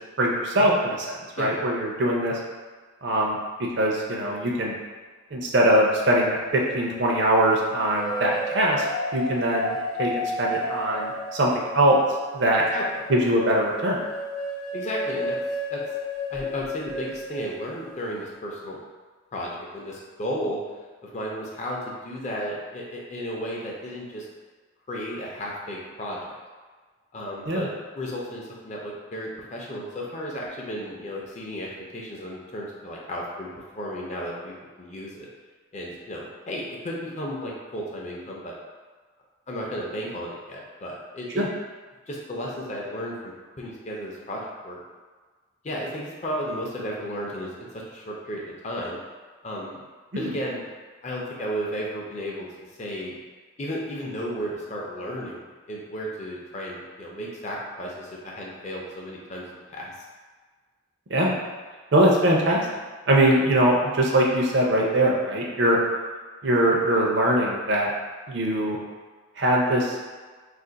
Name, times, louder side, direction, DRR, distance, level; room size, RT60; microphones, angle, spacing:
voice 1, 0.2-1.1 1.4-2.3 3.0-4.7 5.3-8.9 9.1-12.0 12.3-12.6 13.1-14.0 27.5-27.7 41.3-41.5 50.1-50.3 61.1-61.4 61.9-62.7 63.1-65.8 66.4-67.9 68.3-68.8 69.4-70.0, right 1 dB, 60° right, -2 dB, 0.5 m, -22 dB
sound 1, 6.5-7.2 7.9-17.9, left 1 dB, 85° left, 0.8 m, -32 dB
voice 2, 14.7-15.4 15.7-15.8 16.3-18.8 19.3-20.6 21.1-24.3 24.9-26.4 27.1-35.3 35.7-38.5 39.5-41.5 42.1-44.8 45.6-49.0 49.4-49.8 50.2-50.7 51.0-52.5 52.8-53.2 53.6-59.9, equal, 35° left, -3 dB, 0.5 m, -34 dB
2.5 x 2.5 x 3.9 m, 1.4 s
head